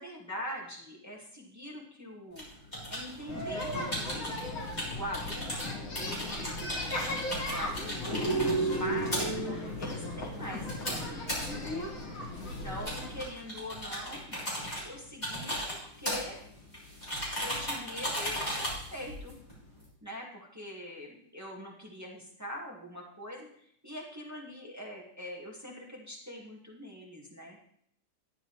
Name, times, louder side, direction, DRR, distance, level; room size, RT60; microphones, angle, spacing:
voice 1, 0.0-2.5 2.9-4.3 4.9-9.3 9.8-11.9 12.4-14.5 14.8-16.4 17.3-19.3 20.0-27.6, left 1 dB, 10° right, -2 dB, 1.4 m, -43 dB
sound 1, 2.3-19.9, equal, 20° left, 3.3 m, -38 dB
sound 2, 3.3-13.2, equal, 70° left, 2.5 m, -35 dB
12.0 x 9.3 x 3.1 m, 0.68 s
omnidirectional pair, 2.3 m